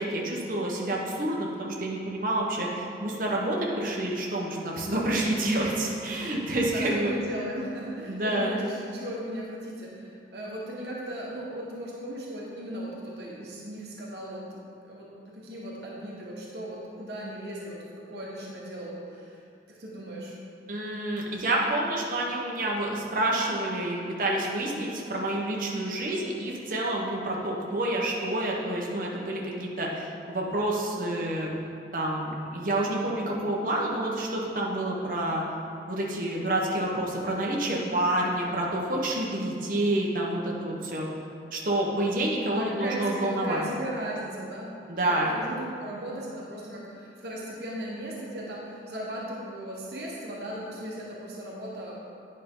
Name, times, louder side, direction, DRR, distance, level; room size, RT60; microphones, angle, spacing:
voice 1, 0.0-7.1 8.1-8.6 20.7-31.5 31.9-35.4 35.9-41.1 41.5-43.6 44.9-45.3, right 1 dB, 50° right, -3 dB, 1.1 m, -28 dB
voice 2, 6.7-19.4 19.7-20.3 42.5-52.0, equal, 70° right, -4 dB, 1.2 m, -37 dB
9.4 x 5.4 x 3.8 m, 2.5 s
head